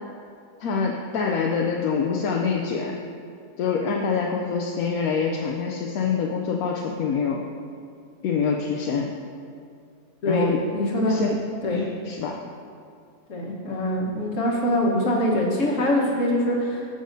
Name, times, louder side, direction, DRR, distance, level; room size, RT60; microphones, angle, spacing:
voice 1, 0.6-2.9 3.6-7.4 8.2-9.1 10.3-10.6 11.1-11.4 11.7-12.4, left 5 dB, 70° left, 0 dB, 0.9 m, -25 dB
voice 2, 10.2-11.2 11.6-11.8 13.3-16.9, left 1 dB, 50° left, -2 dB, 1.5 m, -23 dB
14.0 x 6.2 x 2.7 m, 2.3 s
omnidirectional pair, 1.8 m